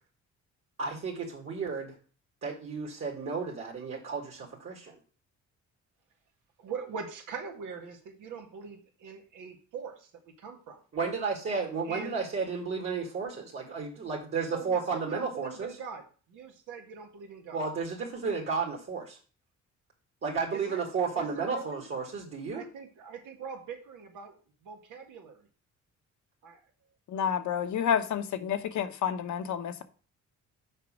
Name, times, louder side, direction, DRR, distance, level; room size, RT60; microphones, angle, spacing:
voice 1, 0.8-2.0 2.4-5.0 10.9-15.8 17.5-19.2 20.2-22.7, right 5 dB, 50° right, 2.0 m, -33 dB
voice 2, 6.6-10.1 10.4-10.8 11.8-12.2 14.5-17.6 20.5-20.9 21.1-21.8 22.5-24.3 24.6-25.5 26.4-26.6, right 5 dB, 90° right, 1.8 m, -42 dB
voice 3, 27.1-29.8, left 8 dB, 70° left, 1.0 m, -29 dB
6.6 x 5.0 x 6.2 m
cardioid pair, 90°, 30 cm